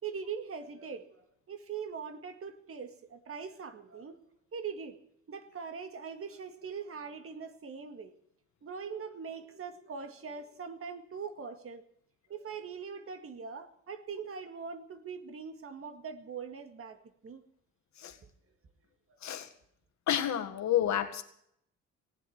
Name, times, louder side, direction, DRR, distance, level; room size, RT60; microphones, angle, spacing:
voice 1, 0.0-4.2 4.5-5.0 5.3-8.1 8.6-11.8 12.3-17.4, right 6 dB, 45° right, 1.9 m, -42 dB
voice 2, 20.1-21.2, left 11 dB, 65° left, 1.8 m, -30 dB
18.0 x 7.7 x 9.9 m
cardioid pair, 90°, 30 cm